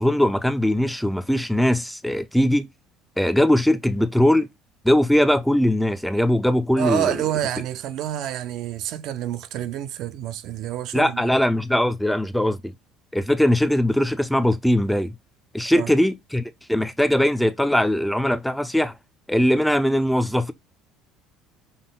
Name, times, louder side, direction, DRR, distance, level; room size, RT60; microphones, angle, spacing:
voice 1, 0.0-2.7 3.2-4.5 4.8-7.1 10.9-12.7 13.1-15.1 15.5-16.4 16.7-18.9 19.3-20.5, left 1 dB, ahead, 0.4 m, -20 dB
voice 2, 6.8-11.3 15.7-15.9, right 12 dB, 60° right, 0.4 m, -28 dB
5.4 x 2.1 x 3.8 m
cardioid pair, 135°, 0 cm